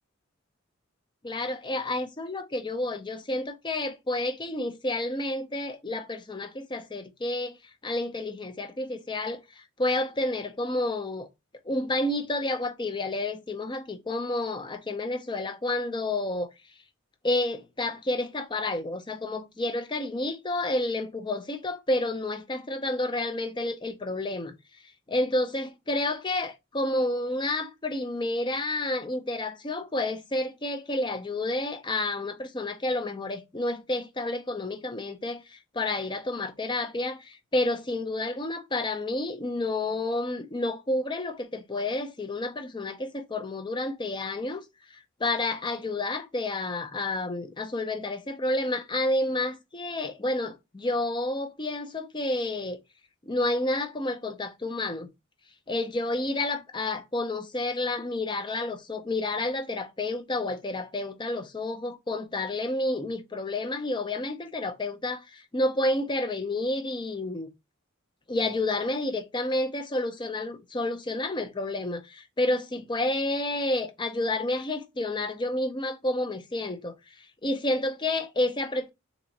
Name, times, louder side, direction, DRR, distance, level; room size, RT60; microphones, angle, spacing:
voice 1, 1.2-7.6 7.8-11.3 11.7-16.5 17.2-24.5 25.1-44.6 44.9-52.8 53.3-55.1 55.7-67.5 68.3-78.9, left 2 dB, 25° left, 0.5 m, -30 dB
3.4 x 2.9 x 3.9 m
head